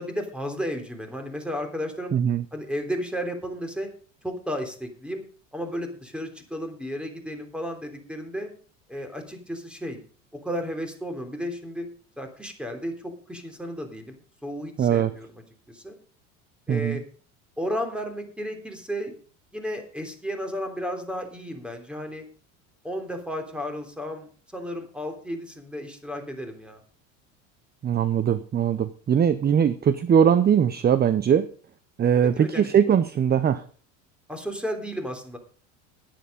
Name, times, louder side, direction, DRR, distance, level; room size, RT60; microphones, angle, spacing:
voice 1, 0.0-2.1 2.5-3.9 4.2-5.2 5.5-8.5 8.9-10.0 10.4-11.9 12.2-14.2 14.4-15.3 15.7-16.0 16.7-17.0 17.6-19.1 19.5-22.2 22.8-26.8 32.1-32.7 34.3-35.4, equal, 5° right, 5 dB, 3.2 m, -33 dB
voice 2, 2.1-2.4 14.8-15.1 16.7-17.0 27.8-31.5 32.0-33.6, right 8 dB, 25° right, 15 dB, 0.7 m, -21 dB
11.0 x 10.5 x 5.2 m, 0.43 s
hypercardioid pair, 85°, 37 cm